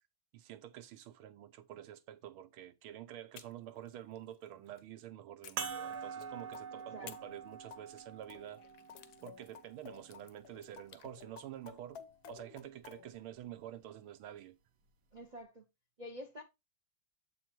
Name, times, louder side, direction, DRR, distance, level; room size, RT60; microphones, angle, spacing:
voice 1, 0.3-8.6 9.2-14.6, right 11 dB, 80° right, 1.7 m, -48 dB
sound 1, 3.3-4.9 5.4-6.4 7.0-11.1, left 10 dB, 80° left, 1.7 m, -59 dB
sound 2, 5.6-10.4 11.1-11.2 13.4-13.5, right 6 dB, 60° right, 1.3 m, -45 dB
sound 3, 5.7-13.2, left 8 dB, 65° left, 1.1 m, -55 dB
voice 2, 6.7-7.4 15.1-15.7 16.0-16.4, equal, 40° right, 0.6 m, -48 dB
7.8 x 4.2 x 4.4 m
omnidirectional pair, 2.3 m